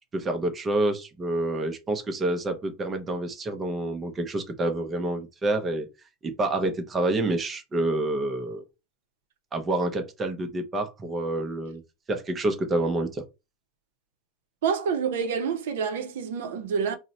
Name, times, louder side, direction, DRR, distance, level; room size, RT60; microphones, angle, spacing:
voice 1, 0.1-5.9 6.2-8.6 9.5-11.8 12.1-13.2, right 2 dB, 15° right, 0.5 m, -28 dB
voice 2, 14.6-17.0, right 6 dB, 85° right, 0.6 m, -27 dB
2.7 x 2.0 x 4.0 m
supercardioid pair, 160°, 0 cm